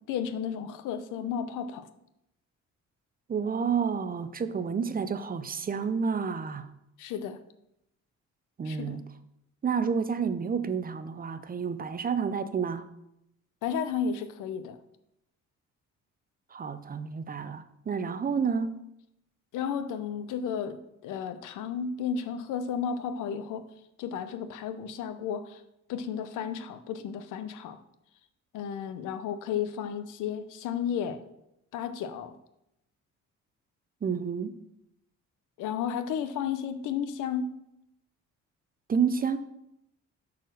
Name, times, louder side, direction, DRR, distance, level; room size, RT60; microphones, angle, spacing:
voice 1, 0.1-1.9 7.0-7.4 8.6-9.0 13.6-14.8 18.1-18.2 19.5-23.7 24.0-25.6 25.9-27.8 28.5-31.2 31.7-32.4 35.6-37.5, left 7 dB, 90° left, 12 dB, 0.7 m, -33 dB
voice 2, 3.3-6.7 8.6-9.1 9.6-12.9 16.5-18.8 34.0-34.6 38.9-39.4, right 6 dB, 30° right, 12 dB, 0.5 m, -30 dB
6.4 x 4.2 x 6.5 m, 0.83 s
cardioid pair, 90°, 30 cm